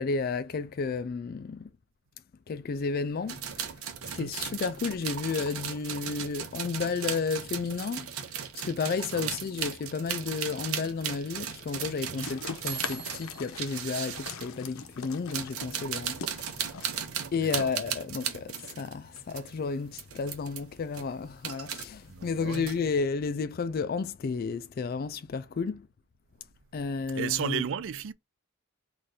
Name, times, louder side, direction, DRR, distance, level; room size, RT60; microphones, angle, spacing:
voice 1, 0.0-1.7 2.5-3.8 4.1-16.9 17.3-25.9 26.7-27.6, left 4 dB, 45° left, 0.3 m, -32 dB
sound 1, 3.3-14.5 15.1-19.5 19.9-20.6 20.9-21.8 22.2-23.0, right 8 dB, 80° right, 0.9 m, -37 dB
sound 2, 12.2-18.6, left 5 dB, 70° left, 0.7 m, -42 dB
voice 2, 17.4-17.7 22.1-22.7 27.1-28.1, right 8 dB, 60° right, 0.4 m, -34 dB
4.2 x 2.5 x 4.7 m
head